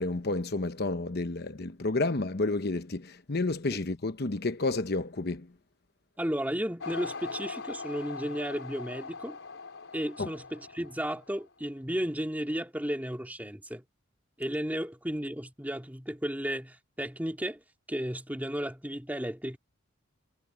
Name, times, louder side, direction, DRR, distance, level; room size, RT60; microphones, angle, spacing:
voice 1, 0.0-5.5 10.2-10.3, left 2 dB, 50° left, 1.0 m, -30 dB
voice 2, 6.2-9.4 9.9-13.8 14.4-17.6 17.9-19.6, equal, 10° right, 2.2 m, -34 dB
sound 1, 6.8-11.5, left 4 dB, 70° left, 4.9 m, -41 dB
head